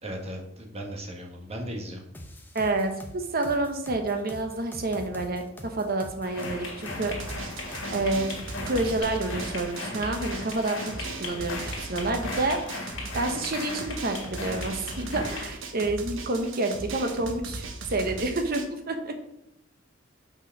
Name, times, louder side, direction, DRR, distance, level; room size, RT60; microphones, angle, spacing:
voice 1, 0.0-2.0, equal, 35° right, 0 dB, 1.4 m, -36 dB
sound 1, 2.1-9.0, left 1 dB, 10° left, 0.8 m, -43 dB
voice 2, 2.5-7.1 7.9-8.3 8.6-12.6 13.1-19.1, right 2 dB, 50° right, 5 dB, 1.0 m, -29 dB
sound 2, 6.2-15.5, left 2 dB, 85° left, 2.0 m, -37 dB
Drum, 7.0-18.6, right 3 dB, 80° right, 1.0 m, -38 dB
6.0 x 4.6 x 5.9 m, 0.79 s
head